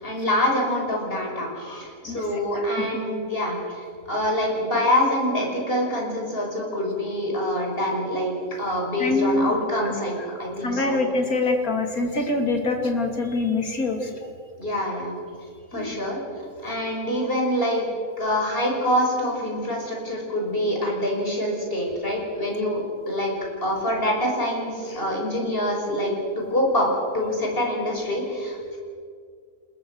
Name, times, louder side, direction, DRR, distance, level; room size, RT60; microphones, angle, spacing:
voice 1, 0.0-8.3 8.6-10.1 10.4-11.0 14.6-15.1 15.7-17.9 18.2-22.8 23.1-23.3 23.6-26.1 26.5-26.9 27.1-28.8, left 1 dB, 40° left, -1 dB, 6.2 m, -25 dB
voice 2, 2.5-2.9 9.0-9.5 9.8-10.2 10.6-14.1 15.7-15.9, left 3 dB, 75° left, 3 dB, 3.3 m, -25 dB
28.5 x 21.5 x 6.5 m, 2.2 s
omnidirectional pair, 1.5 m